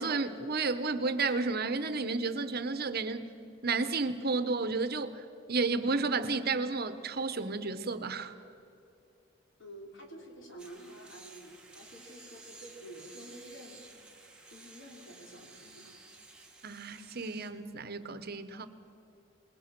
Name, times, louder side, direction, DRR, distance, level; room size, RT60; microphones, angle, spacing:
voice 1, 0.0-3.3 3.6-8.3 16.6-18.7, right 3 dB, 55° right, 11 dB, 1.1 m, -32 dB
voice 2, 9.6-15.9, right 1 dB, 75° left, 1 dB, 4.4 m, -50 dB
sound 1, 10.6-17.5, right 3 dB, 5° right, 2.4 m, -54 dB
26.5 x 20.5 x 6.1 m, 2.7 s
head